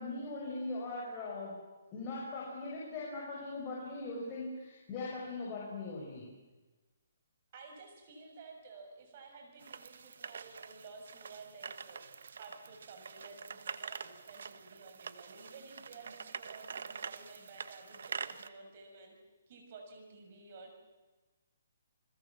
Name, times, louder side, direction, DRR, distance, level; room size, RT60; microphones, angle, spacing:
voice 1, 0.0-1.6 1.9-6.3, left 2 dB, 25° left, -5 dB, 6.7 m, -40 dB
voice 2, 7.5-19.1 19.5-20.8, right 4 dB, 40° right, 4 dB, 6.8 m, -53 dB
sound 1, 9.6-18.5, right 6 dB, 65° right, 1.3 m, -45 dB
29.0 x 20.5 x 7.5 m, 1.2 s
hypercardioid pair, 160°, 0 cm